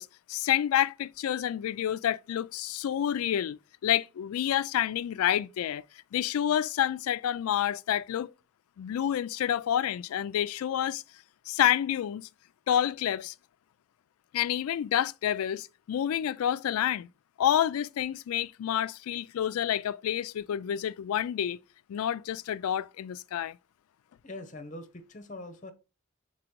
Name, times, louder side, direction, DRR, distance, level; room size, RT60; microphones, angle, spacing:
voice 1, 0.0-5.8 6.1-8.3 8.8-11.0 11.5-12.3 12.7-13.3 14.3-17.1 17.4-21.6 21.9-23.6, left 10 dB, 85° left, 0.3 m, -28 dB
voice 2, 24.2-25.7, left 2 dB, 35° left, 0.8 m, -42 dB
5.0 x 4.3 x 4.4 m
head